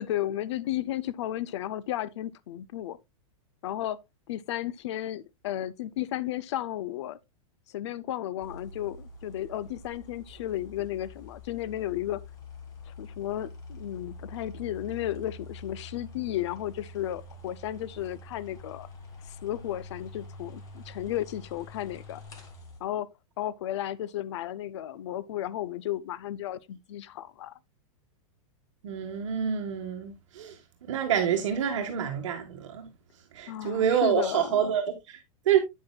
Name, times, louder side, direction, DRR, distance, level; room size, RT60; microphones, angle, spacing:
voice 1, 0.0-3.0 3.6-4.0 4.3-7.2 7.7-12.2 12.9-18.9 19.3-22.2 22.8-23.1 23.4-27.5 33.5-34.6, left 13 dB, 55° left, 0.5 m, -33 dB
sound 1, 8.4-22.8, left 2 dB, 20° left, 1.2 m, -46 dB
voice 2, 28.8-32.9 33.3-35.6, right 8 dB, 60° right, 1.4 m, -27 dB
8.7 x 7.8 x 2.2 m
supercardioid pair, 170°, 17 cm